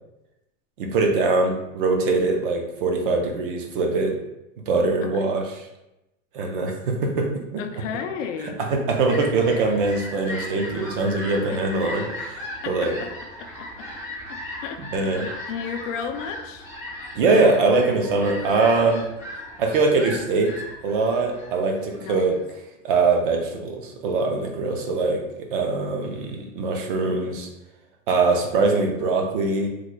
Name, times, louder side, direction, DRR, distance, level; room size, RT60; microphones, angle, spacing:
voice 1, 0.8-4.2 4.7-5.7 6.3-7.6 8.6-12.9 14.9-15.3 17.1-19.0 19.6-20.5 20.8-22.3 22.8-25.2 25.5-27.5 28.1-29.7, right 3 dB, 45° right, 2 dB, 0.5 m, -22 dB
voice 2, 7.6-8.6 11.5-11.6 12.6-13.1 13.4-13.9 14.3-16.7 22.0-22.4, left 7 dB, 70° left, 6 dB, 0.5 m, -34 dB
Fowl, 8.5-22.4, left 1 dB, 10° left, 0.3 m, -37 dB
3.1 x 2.3 x 3.8 m, 0.91 s
supercardioid pair, 170°, 39 cm